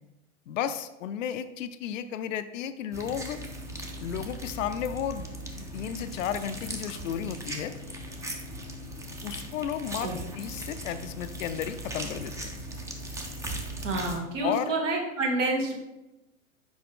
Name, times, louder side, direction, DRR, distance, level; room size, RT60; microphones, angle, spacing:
voice 1, 0.5-3.4 4.0-7.7 9.2-12.6 14.4-14.7, left 9 dB, 70° left, 11 dB, 0.5 m, -33 dB
sound 1, 2.9-14.2, right 1 dB, 10° right, 0.5 m, -38 dB
voice 2, 13.8-15.7, right 2 dB, 60° right, 1 dB, 1.7 m, -28 dB
6.0 x 4.8 x 3.6 m, 0.99 s
hypercardioid pair, 105°, 41 cm